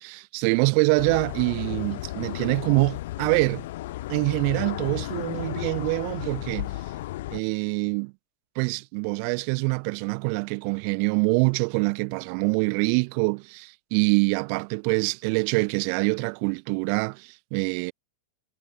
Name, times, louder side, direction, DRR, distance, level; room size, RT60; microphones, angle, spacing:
voice 1, 0.0-3.6 4.1-6.7 7.3-8.1 8.6-17.9, right 40 dB or more, 55° right, 0.5 m, -25 dB
sound 1, 1.0-7.4, left 16 dB, 65° left, 0.9 m, -34 dB
hypercardioid pair, 115°, 0 cm